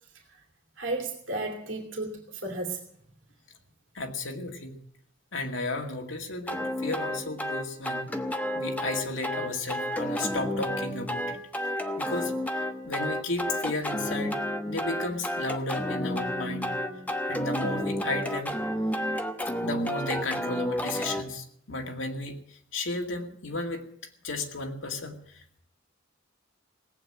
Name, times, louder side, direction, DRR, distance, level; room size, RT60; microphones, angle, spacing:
voice 1, 0.8-2.8, right 2 dB, 70° right, 1 dB, 2.8 m, -33 dB
voice 2, 3.9-4.7 5.3-8.1 8.5-11.4 11.6-11.7 12.0-14.4 14.7-16.8 17.3-18.5 19.6-23.8 24.2-25.6, left 2 dB, 75° left, 3 dB, 2.1 m, -34 dB
sound 1, 6.5-21.2, left 1 dB, 10° left, 1.1 m, -31 dB
18.0 x 8.7 x 8.8 m, 0.66 s
head